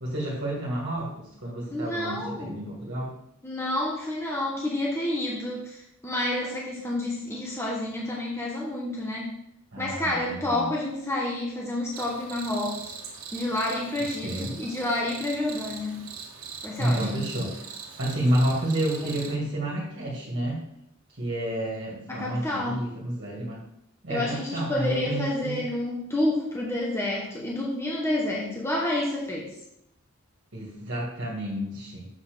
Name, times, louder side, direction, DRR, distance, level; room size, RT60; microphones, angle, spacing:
voice 1, 0.0-3.2 9.7-10.7 14.0-14.6 16.8-17.7 18.0-20.6 21.1-23.6 24.0-25.7 30.5-32.1, right 1 dB, 55° right, -4 dB, 2.1 m, -30 dB
voice 2, 1.7-2.5 3.4-9.4 9.8-12.9 13.3-16.0 16.6-17.2 22.1-22.7 24.1-29.5, left 1 dB, 10° left, -3 dB, 1.1 m, -29 dB
Cricket, 11.9-19.4, right 6 dB, 85° right, 1.5 m, -41 dB
7.4 x 4.3 x 6.7 m, 0.77 s
head